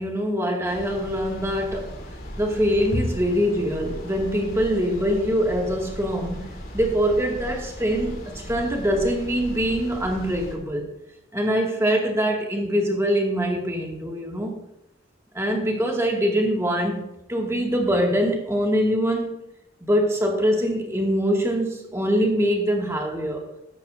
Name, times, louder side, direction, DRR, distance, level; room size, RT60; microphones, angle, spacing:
voice 1, 0.0-2.0 2.4-6.4 6.7-10.9 11.3-14.5 15.3-19.4 19.8-23.5, equal, 15° right, 0 dB, 2.0 m, -23 dB
sound 1, 0.6-10.5, equal, 55° left, 3.3 m, -37 dB
14.5 x 12.0 x 2.6 m, 0.82 s
head